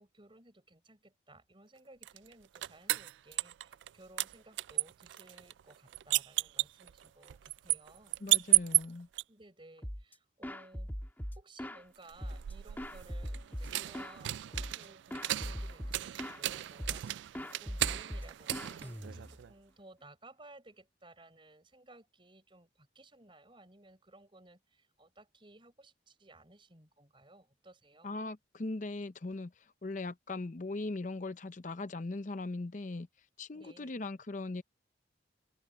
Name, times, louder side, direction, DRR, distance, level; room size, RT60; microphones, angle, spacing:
voice 1, 0.0-8.2 9.3-10.9 11.4-28.1 33.5-33.9, right 2 dB, 25° right, 4.1 m, -58 dB
sound 1, 2.0-3.9 4.2-9.2 12.0-19.5, right 17 dB, 75° right, 0.3 m, -34 dB
voice 2, 8.2-9.1 28.0-33.1 33.4-34.6, left 2 dB, 40° left, 0.6 m, -39 dB
sound 2, 9.8-10.1 10.4-11.8 12.2-14.2 14.5-14.9 15.1-16.4 16.8-17.1 17.3-19.4, equal, 10° left, 1.9 m, -41 dB
head